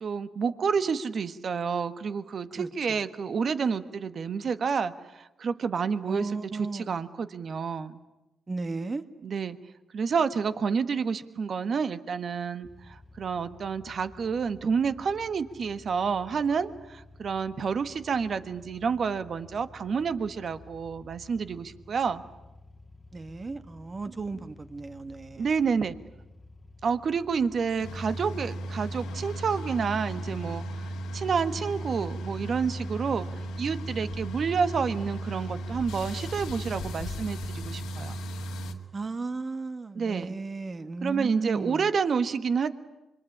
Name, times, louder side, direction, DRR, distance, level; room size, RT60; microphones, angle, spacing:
voice 1, 0.0-6.3 6.6-8.0 9.2-9.6 9.9-22.2 25.4-25.9 26.8-30.6 31.1-33.3 33.6-38.2 40.0-40.4 41.0-42.7, right 6 dB, 60° right, 12 dB, 1.4 m, -29 dB
voice 2, 2.6-3.1 6.0-7.0 8.5-9.1 23.1-25.5 38.9-41.9, right 3 dB, 40° right, 10 dB, 1.7 m, -35 dB
sound 1, 12.6-27.9, left 2 dB, 25° left, 1.7 m, -52 dB
sound 2, 27.8-38.7, right 1 dB, 90° left, 2.0 m, -35 dB
26.0 x 23.0 x 9.9 m, 0.98 s
supercardioid pair, 50°, 0 cm